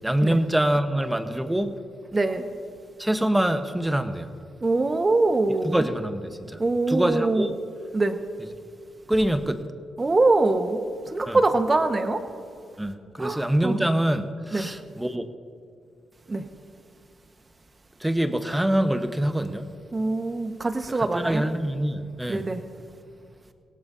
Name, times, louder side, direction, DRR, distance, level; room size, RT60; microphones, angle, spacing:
voice 1, 0.0-1.7 3.0-4.3 5.6-6.6 6.9-7.5 9.1-9.6 11.3-11.4 12.8-15.3 18.0-19.7 21.0-22.5, right 1 dB, 10° right, 8 dB, 1.2 m, -25 dB
voice 2, 2.1-2.5 4.6-5.8 6.6-7.5 7.9-8.2 10.0-10.8 11.1-12.2 13.2-13.8 14.5-14.7 16.3-16.5 19.9-21.4 22.3-22.6, right 2 dB, 30° right, 7 dB, 1.4 m, -23 dB
23.5 x 17.0 x 2.8 m, 2.3 s
supercardioid pair, 50°, 0 cm